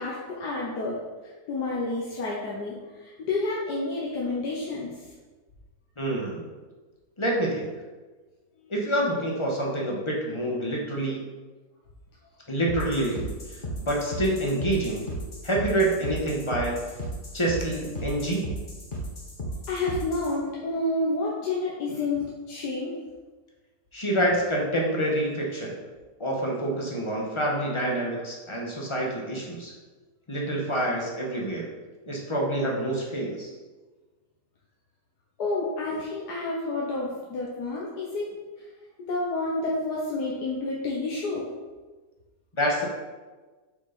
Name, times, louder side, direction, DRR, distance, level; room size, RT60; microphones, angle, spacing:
voice 1, 0.0-5.0 19.7-22.9 35.4-38.3 39.1-41.4, left 2 dB, 90° left, -4 dB, 1.7 m, -29 dB
voice 2, 6.0-6.5 7.2-7.7 8.7-11.2 12.5-13.3 13.8-15.1 15.4-16.8 17.3-18.6 23.9-25.7 26.2-29.7 30.3-31.7 32.1-33.5 42.5-42.8, right 1 dB, 20° left, -2 dB, 1.4 m, -27 dB
sound 1, 12.7-20.3, equal, 35° left, 1.2 m, -35 dB
7.7 x 5.8 x 4.1 m, 1.3 s
omnidirectional pair, 1.7 m